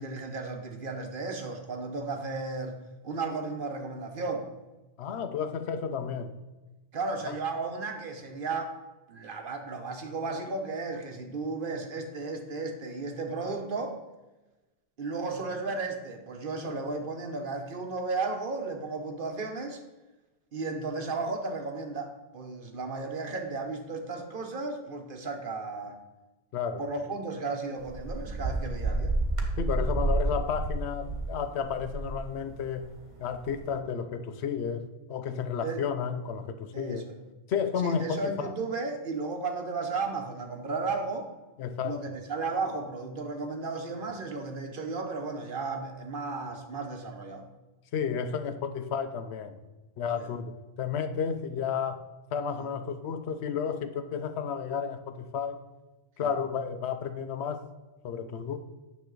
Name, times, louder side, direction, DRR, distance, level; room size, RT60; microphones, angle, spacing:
voice 1, 0.0-2.8 3.0-4.5 6.9-8.7 9.1-14.0 15.0-19.8 20.5-26.0 26.8-29.1 35.6-35.8 36.7-37.2 37.8-41.3 41.8-47.4 50.2-50.3 52.5-52.7 56.2-56.3, right 3 dB, 55° right, 5 dB, 1.0 m, -34 dB
voice 2, 5.0-6.3 7.3-7.4 26.5-26.9 29.6-32.9 33.2-37.0 37.5-38.5 41.6-42.0 47.9-49.6 50.0-52.0 52.3-55.6 56.2-57.7 58.0-58.6, left 7 dB, 80° left, 10 dB, 1.0 m, -32 dB
sound 1, 27.8-31.3 31.6-32.9 33.2-33.7, right 2 dB, 30° right, 1.2 m, -30 dB
9.4 x 6.7 x 3.9 m, 1.1 s
omnidirectional pair, 1.1 m